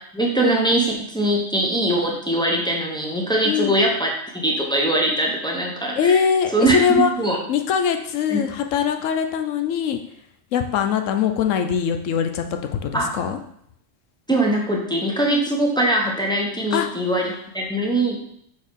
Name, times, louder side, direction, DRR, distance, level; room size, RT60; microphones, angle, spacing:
voice 1, 0.1-6.2 6.5-6.8 7.2-7.4 8.3-8.4 12.9-13.1 14.3-18.2, right 1 dB, 5° left, -1 dB, 0.8 m, -22 dB
voice 2, 3.4-3.8 5.9-7.1 7.5-10.0 10.5-12.4 12.7-13.4 16.7-16.9, left 7 dB, 80° left, 6 dB, 1.0 m, -22 dB
6.2 x 4.4 x 3.6 m, 0.69 s
omnidirectional pair, 1.3 m